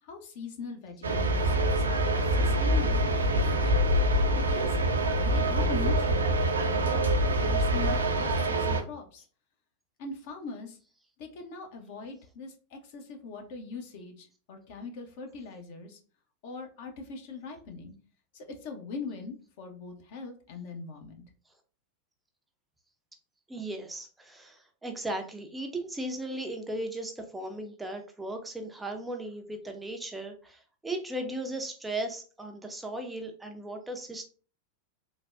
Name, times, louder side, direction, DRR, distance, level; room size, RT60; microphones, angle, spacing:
voice 1, 0.0-3.9 4.3-4.8 5.2-6.4 6.7-7.1 7.4-9.2 10.0-10.8 11.2-16.0 16.4-17.9 18.3-21.2, left 4 dB, 50° left, 4 dB, 0.6 m, -41 dB
sound 1, 1.0-8.8, right 1 dB, 75° right, 0.4 m, -25 dB
voice 2, 23.5-34.3, right 1 dB, 10° right, 4 dB, 0.4 m, -37 dB
3.3 x 2.1 x 2.4 m, 0.38 s
figure-of-eight pair, 90°, 0 cm